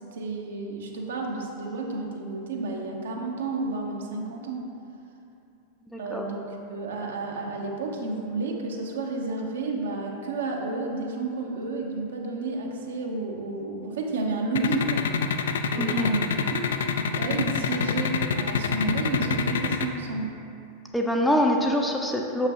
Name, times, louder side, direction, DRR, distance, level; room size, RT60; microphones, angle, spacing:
voice 1, 0.1-4.6 6.0-15.0 15.7-16.2 16.5-16.7 17.1-20.3, right 3 dB, 65° right, 0 dB, 0.8 m, -31 dB
voice 2, 5.9-6.3 15.8-16.1 20.9-22.5, equal, 5° left, 1 dB, 0.5 m, -24 dB
sound 1, 14.6-19.9, left 6 dB, 60° left, 0.3 m, -25 dB
6.7 x 5.7 x 2.9 m, 2.6 s
figure-of-eight pair, 90°, 0 cm